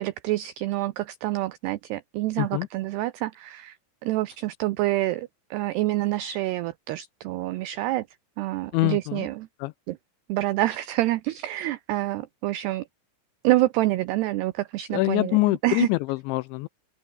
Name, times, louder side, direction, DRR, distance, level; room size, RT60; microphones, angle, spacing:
voice 1, 0.0-3.8 4.0-8.1 8.4-9.5 9.9-10.0 10.3-12.9 13.4-15.9, right 16 dB, 85° right, 2.3 m, -27 dB
voice 2, 2.4-2.7 8.7-9.3 9.6-9.7 14.9-16.7, left 22 dB, 85° left, 2.6 m, -24 dB
open air
omnidirectional pair, 5.8 m